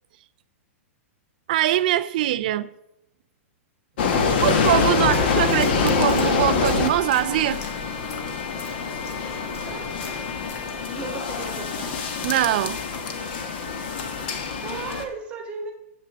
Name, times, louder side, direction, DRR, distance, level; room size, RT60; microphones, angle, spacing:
voice 1, 1.5-2.7 4.4-7.6 12.2-12.8, right 13 dB, 35° right, 0.3 m, -22 dB
sound 1, 4.0-15.0, left 5 dB, 45° left, 1.2 m, -25 dB
sound 2, 4.6-11.1, left 2 dB, 65° left, 2.5 m, -43 dB
voice 2, 9.6-10.0 10.8-12.0 14.6-15.7, right 4 dB, 15° right, 1.3 m, -36 dB
7.7 x 6.6 x 7.4 m
hypercardioid pair, 170°, 8 cm